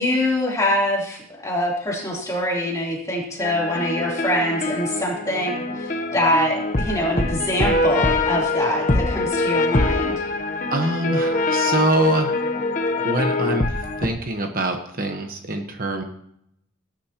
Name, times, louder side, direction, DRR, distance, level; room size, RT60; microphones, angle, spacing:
voice 1, 0.0-10.1, left 1 dB, 15° left, -3 dB, 3.2 m, -24 dB
sound 1, 3.4-14.1, left 2 dB, 40° left, 0.9 m, -23 dB
voice 2, 10.7-12.3 13.0-13.7 14.0-16.0, right 2 dB, 45° right, 4 dB, 1.1 m, -24 dB
18.5 x 10.5 x 2.9 m, 0.74 s
head